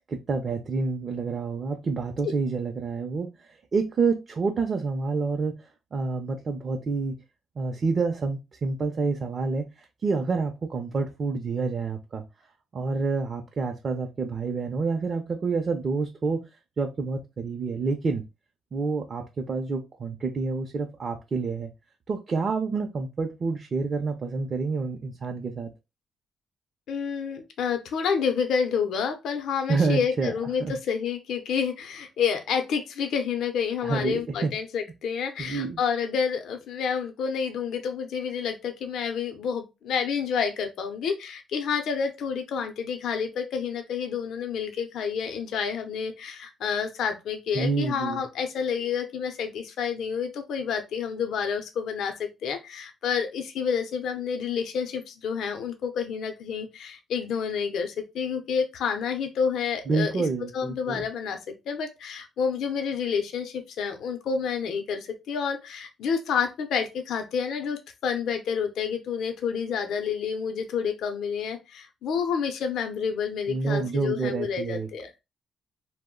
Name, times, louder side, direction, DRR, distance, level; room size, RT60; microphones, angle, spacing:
voice 1, 0.1-3.3 3.7-5.6 5.9-7.2 7.6-12.2 12.7-16.5 16.8-18.2 18.7-21.7 22.1-25.7 29.7-30.3 30.6-30.8 33.8-34.5 35.4-35.8 47.5-48.2 59.9-61.1 73.5-74.9, right 4 dB, 45° right, 3 dB, 0.5 m, -28 dB
voice 2, 26.9-60.2 60.5-75.1, left 6 dB, 75° left, 6 dB, 0.5 m, -29 dB
2.2 x 2.0 x 3.6 m, 0.24 s
cardioid pair, 90°, 0 cm